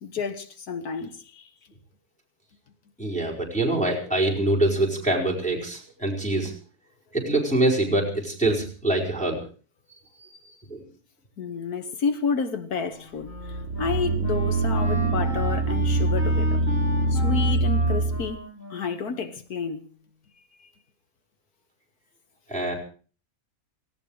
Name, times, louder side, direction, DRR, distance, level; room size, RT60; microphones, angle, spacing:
voice 1, 0.0-1.5 11.4-16.6 17.1-18.4 18.7-19.8 20.6-20.7, left 5 dB, 80° left, 1.8 m, -30 dB
voice 2, 3.0-6.5 7.1-9.4 10.4-10.8 22.5-22.7, right 2 dB, 5° left, 4.7 m, -24 dB
Wind instrument woodwind instrument, 12.7-19.9, right 2 dB, 60° left, 4.8 m, -37 dB
sound 1, 13.2-18.3, right 2 dB, 55° right, 2.5 m, -24 dB
18.0 x 16.0 x 4.8 m
omnidirectional pair, 1.6 m